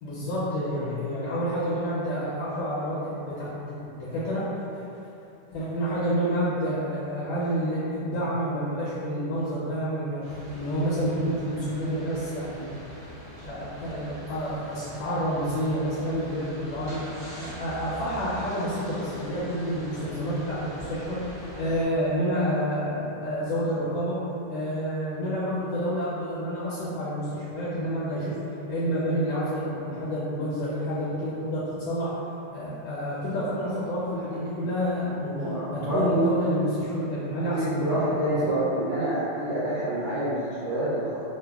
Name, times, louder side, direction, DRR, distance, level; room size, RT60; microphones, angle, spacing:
voice 1, 0.0-4.5 5.5-10.2 10.5-12.7 13.4-17.0 17.4-21.3 21.6-24.2 24.5-28.4 28.7-32.1 32.5-35.4 35.7-38.5, equal, 75° left, -9 dB, 1.2 m, -29 dB
sound 1, 10.2-21.9, equal, 25° right, 0.5 m, -43 dB
voice 2, 35.2-36.3 37.5-41.1, right 1 dB, 80° right, -11 dB, 1.3 m, -27 dB
3.2 x 2.1 x 2.2 m, 2.8 s
omnidirectional pair, 2.0 m